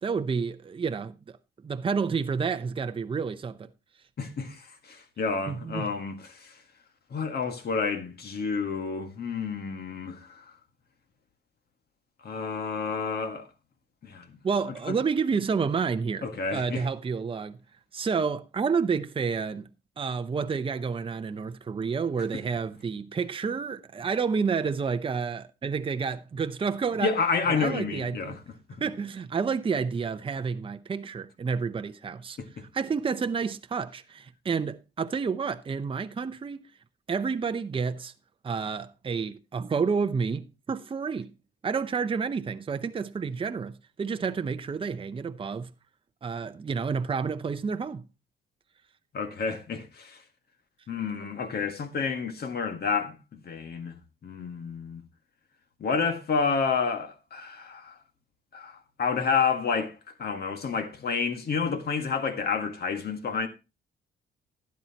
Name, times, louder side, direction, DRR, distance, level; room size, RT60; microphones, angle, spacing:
voice 1, 0.0-1.1 1.6-3.7 5.5-5.9 14.4-17.6 17.9-19.7 20.0-27.1 27.5-28.4 28.8-32.4 32.7-36.7 37.1-38.1 38.4-41.3 41.6-45.7 46.2-48.0, right 5 dB, 25° right, 0.6 m, -29 dB
voice 2, 4.2-6.6 7.1-10.5 12.2-13.5 14.0-14.4 14.9-15.0 16.2-16.9 27.0-28.4 32.4-32.6 49.1-50.2 50.9-55.0 55.8-58.0 58.5-63.5, left 5 dB, 55° left, 1.8 m, -30 dB
12.0 x 9.5 x 2.9 m
cardioid pair, 90°, 20 cm